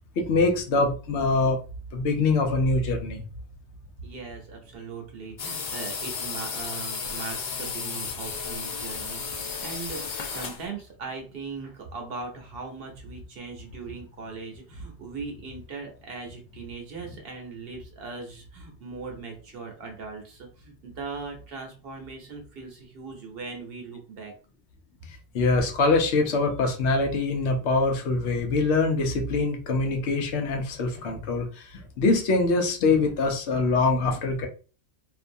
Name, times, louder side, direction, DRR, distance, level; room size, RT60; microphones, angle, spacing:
voice 1, 0.2-1.6 1.9-3.2 25.3-34.5, left 3 dB, 75° left, 4 dB, 0.9 m, -24 dB
voice 2, 4.0-24.3, right 4 dB, 60° right, 2 dB, 0.9 m, -39 dB
sound 1, 5.4-10.7, left 5 dB, 60° left, 0.5 m, -33 dB
2.6 x 2.2 x 2.6 m, 0.37 s
omnidirectional pair, 1.2 m